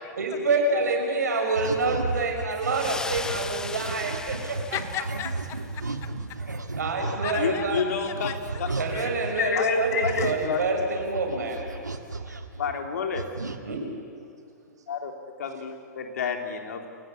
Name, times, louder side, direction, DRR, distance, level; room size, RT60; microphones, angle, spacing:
voice 1, 0.2-4.8 6.8-7.8 8.7-11.6 13.6-13.8, right 3 dB, 70° right, 2 dB, 6.3 m, -27 dB
sound 1, 1.5-9.4 9.8-12.9 13.1-13.6, right 3 dB, 90° right, 1.8 m, -34 dB
sound 2, 2.6-5.6, left 3 dB, 5° left, 0.8 m, -37 dB
voice 2, 4.7-5.8 7.2-9.1, left 11 dB, 30° left, 10 dB, 1.6 m, -36 dB
voice 3, 7.4-8.3 8.6-8.7 9.4-10.6 12.6-13.3 14.9-15.1 15.4-16.8, left 6 dB, 65° left, 4 dB, 3.5 m, -28 dB
28.0 x 16.5 x 9.7 m, 2.3 s
figure-of-eight pair, 115°, 9 cm